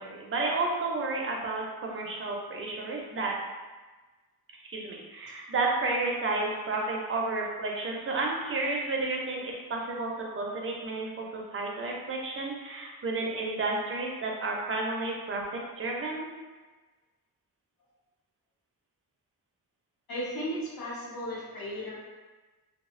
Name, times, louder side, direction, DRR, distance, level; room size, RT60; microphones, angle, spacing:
voice 1, 0.0-3.3 4.7-16.3, right 3 dB, 35° right, -1 dB, 0.4 m, -31 dB
voice 2, 20.1-22.0, equal, 65° left, -5 dB, 0.8 m, -35 dB
2.5 x 2.0 x 2.4 m, 1.3 s
wide cardioid pair, 125°, 38 cm